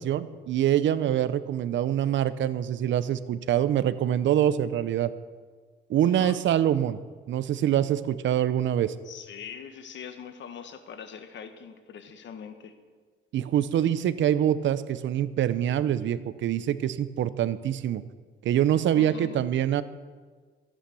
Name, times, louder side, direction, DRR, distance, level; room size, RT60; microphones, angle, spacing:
voice 1, 0.0-5.1 5.9-7.0 7.3-8.9 13.3-18.0 18.4-19.8, right 11 dB, 70° right, 15 dB, 0.7 m, -25 dB
voice 2, 6.0-6.4 9.0-12.7 18.9-19.4, left 7 dB, 65° left, 9 dB, 1.4 m, -42 dB
14.5 x 8.9 x 7.0 m, 1.5 s
cardioid pair, 90°, 20 cm